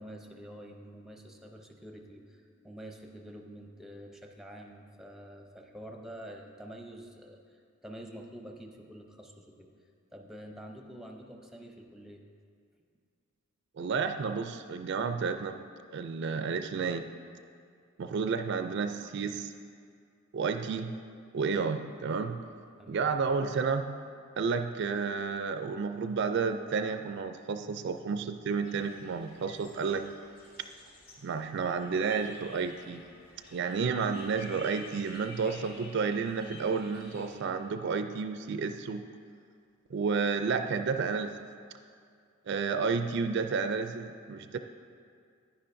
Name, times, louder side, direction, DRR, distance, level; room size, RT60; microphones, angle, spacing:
voice 1, 0.0-9.7 10.1-12.2 22.8-23.0, equal, ahead, 2 dB, 0.6 m, -47 dB
voice 2, 13.8-15.6 15.9-17.1 18.0-19.5 20.3-20.9 21.3-22.4 22.9-24.0 24.4-30.1 31.2-33.0 33.5-39.0 39.9-41.4 42.5-44.6, right 5 dB, 60° right, 8 dB, 0.4 m, -31 dB
sound 1, 28.6-37.4, left 2 dB, 55° left, 1.9 m, -51 dB
10.0 x 10.0 x 2.6 m, 2.2 s
head